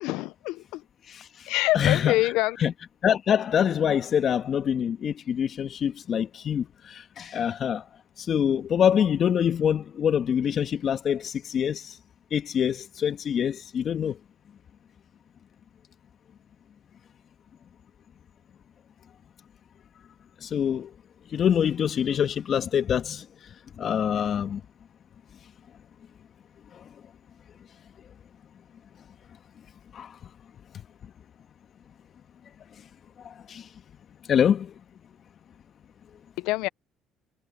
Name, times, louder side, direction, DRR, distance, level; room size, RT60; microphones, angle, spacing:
voice 1, 0.0-0.8 1.5-2.6 36.4-36.7, left 19 dB, 75° left, 0.8 m, -25 dB
voice 2, 1.7-2.2 2.6-2.7 3.0-7.8 8.2-11.9 12.3-14.2 20.4-20.9 21.3-23.2 23.8-24.6 29.9-30.1 33.5-33.6 34.3-34.7, left 8 dB, 50° left, 2.0 m, -25 dB
supercardioid pair, 70°, 0 cm